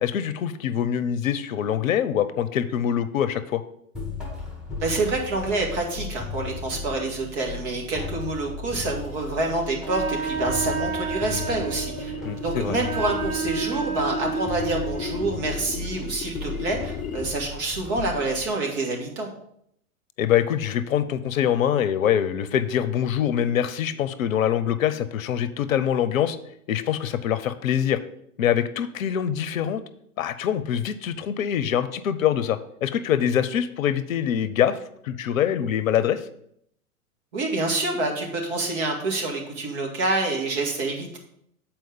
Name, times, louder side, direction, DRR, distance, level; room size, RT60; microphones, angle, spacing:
voice 1, 0.0-3.6 12.2-12.8 20.2-26.4 26.7-28.0 28.4-29.8 30.2-34.8 35.0-36.3, left 9 dB, 65° left, 13 dB, 0.7 m, -24 dB
sound 1, 3.9-18.5, left 3 dB, ahead, 1.7 m, -36 dB
voice 2, 4.8-12.1 12.4-19.3 37.3-41.2, right 2 dB, 50° right, 1 dB, 2.2 m, -27 dB
sound 2, 8.8-17.5, left 8 dB, 20° left, 0.5 m, -37 dB
Wind instrument woodwind instrument, 9.8-15.4, right 7 dB, 75° right, 1.0 m, -31 dB
7.7 x 4.5 x 5.4 m, 0.72 s
hypercardioid pair, 105°, 43 cm